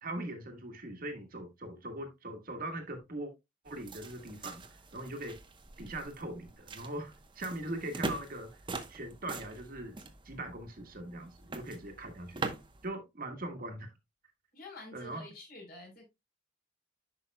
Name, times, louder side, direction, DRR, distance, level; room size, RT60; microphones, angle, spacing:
voice 1, 0.0-3.3 3.6-4.6 4.9-5.4 5.8-8.6 8.9-13.9 14.9-15.2, right 1 dB, 50° right, 1.5 m, -41 dB
sound 1, 3.7-12.9, right 3 dB, 25° right, 0.9 m, -43 dB
voice 2, 14.5-16.0, left 2 dB, 50° left, 4.0 m, -48 dB
10.5 x 5.4 x 2.2 m
head